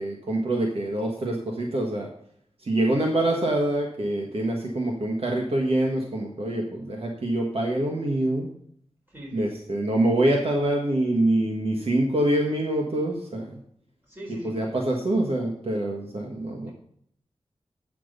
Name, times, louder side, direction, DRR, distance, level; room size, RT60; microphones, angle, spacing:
voice 1, 0.0-2.1 2.6-8.5 9.3-13.6 14.4-16.7, right 1 dB, 65° right, 0 dB, 1.5 m, -25 dB
voice 2, 9.1-9.8 14.1-14.7, equal, 20° right, -2 dB, 4.4 m, -42 dB
8.7 x 6.0 x 6.6 m, 0.67 s
wide cardioid pair, 95°, 11 cm